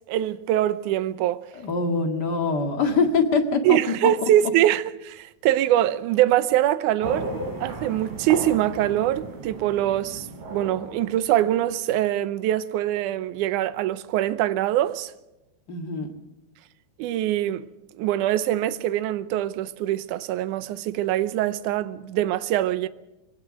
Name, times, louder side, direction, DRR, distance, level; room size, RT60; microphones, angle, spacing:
voice 1, 0.0-1.5 3.6-15.1 17.0-17.7 17.9-22.9, right 13 dB, 75° right, 1.9 m, -23 dB
voice 2, 1.6-3.8 15.7-16.1, left 4 dB, 35° left, 1.8 m, -23 dB
sound 1, 7.0-11.8, right 1 dB, 45° right, 5.4 m, -35 dB
23.5 x 18.5 x 6.4 m
omnidirectional pair, 4.4 m